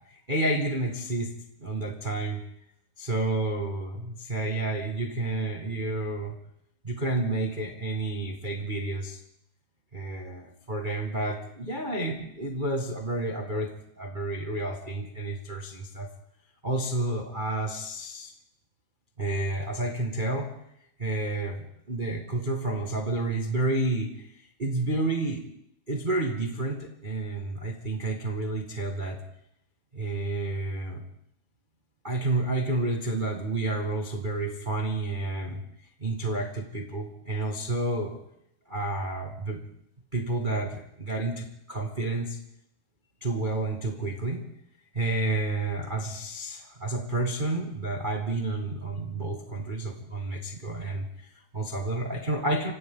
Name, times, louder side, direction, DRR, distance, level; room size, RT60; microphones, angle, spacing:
voice 1, 0.1-1.3 1.6-2.4 3.0-6.3 6.8-9.2 9.9-16.1 16.6-18.3 19.2-20.5 21.0-25.4 25.9-29.2 29.9-31.0 32.0-35.6 36.0-38.2 38.7-39.6 40.1-42.4 43.2-44.4 44.9-52.7, right 2 dB, 30° right, 1 dB, 0.8 m, -30 dB
29.5 x 25.5 x 3.9 m, 0.75 s
omnidirectional pair, 4.4 m